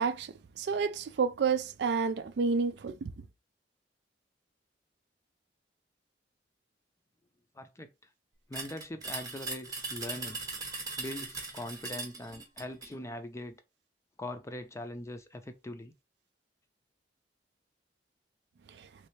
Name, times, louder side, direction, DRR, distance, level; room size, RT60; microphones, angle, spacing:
voice 1, 0.0-3.1, right 5 dB, 65° right, 0.4 m, -30 dB
voice 2, 7.5-7.9 8.5-10.4 11.0-13.6 14.2-15.9, left 1 dB, 15° left, 0.5 m, -41 dB
sound 1, 8.5-12.9, right 3 dB, 20° right, 0.9 m, -39 dB
3.2 x 3.2 x 3.1 m
head